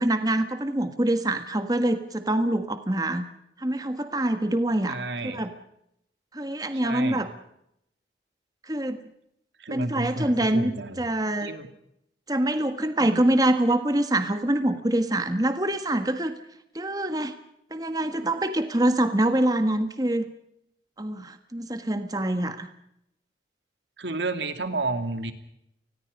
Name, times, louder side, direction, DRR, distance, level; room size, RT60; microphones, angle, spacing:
voice 1, 0.0-3.3 3.6-5.5 6.3-7.3 8.6-9.0 9.7-11.5 12.3-16.3 16.7-17.3 17.7-20.3 21.0-22.7, right 1 dB, 20° right, 8 dB, 1.5 m, -25 dB
voice 2, 4.9-5.4 6.8-7.2 9.6-11.1 11.4-11.7 13.0-13.3 24.0-25.3, right 2 dB, 80° right, 8 dB, 2.5 m, -31 dB
29.5 x 20.5 x 5.4 m, 0.79 s
head